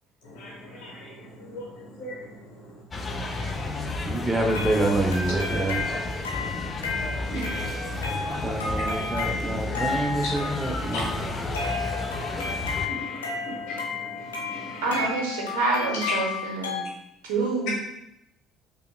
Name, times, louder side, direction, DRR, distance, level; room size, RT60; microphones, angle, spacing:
voice 1, 0.4-1.6 2.0-2.1 3.3-3.5 4.0-4.1 7.3-7.7 10.9-11.1 12.3-12.5 12.9-13.9 14.3-15.0, equal, 55° left, -4 dB, 0.9 m, -37 dB
sound 1, 2.9-12.9, left 2 dB, 25° left, 0.5 m, -32 dB
voice 2, 4.0-5.9 8.4-11.3, right 2 dB, 10° right, 1 dB, 0.8 m, -27 dB
sound 2, 4.5-16.8, left 4 dB, 80° left, 0.5 m, -33 dB
voice 3, 14.8-16.8 17.2-17.7, right 3 dB, 70° right, -1 dB, 0.8 m, -27 dB
5.1 x 2.1 x 2.2 m, 0.82 s
figure-of-eight pair, 55°, 0 cm